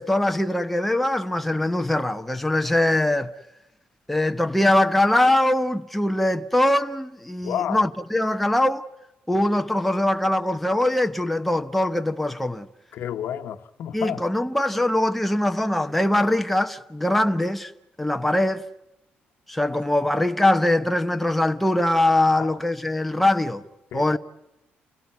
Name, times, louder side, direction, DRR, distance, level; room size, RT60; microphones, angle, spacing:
voice 1, 0.0-3.3 4.1-8.9 9.3-12.7 13.9-17.7 18.0-18.6 19.5-23.6 23.9-24.2, left 1 dB, 5° left, 0.9 m, -22 dB
voice 2, 7.4-7.8 12.9-14.2 22.3-22.5 23.9-24.2, left 10 dB, 70° left, 1.1 m, -30 dB
29.5 x 17.0 x 9.4 m
cardioid pair, 120°, 4 cm